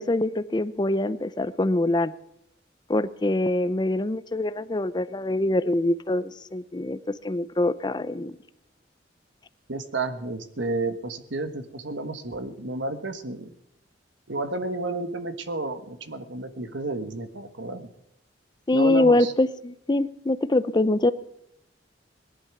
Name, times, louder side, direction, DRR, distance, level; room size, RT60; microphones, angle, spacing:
voice 1, 0.0-2.1 2.9-7.0 7.2-8.4 18.7-21.1, left 2 dB, 25° left, 14 dB, 0.6 m, -24 dB
voice 2, 9.7-13.5 14.3-17.9 18.7-19.3, right 2 dB, 80° right, 9 dB, 1.4 m, -31 dB
18.5 x 11.0 x 6.0 m, 0.79 s
head